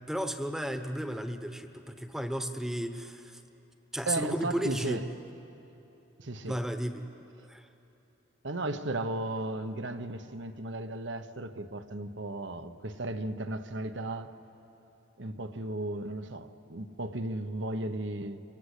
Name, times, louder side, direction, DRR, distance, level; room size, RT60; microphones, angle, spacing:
voice 1, 0.0-3.4 3.9-5.0 6.5-7.1 7.5-7.7, equal, ahead, 1.1 m, -34 dB
voice 2, 4.1-5.0 6.2-6.6 8.4-14.3 15.2-18.4, right 2 dB, 70° right, 1.1 m, -35 dB
27.5 x 24.0 x 8.3 m
head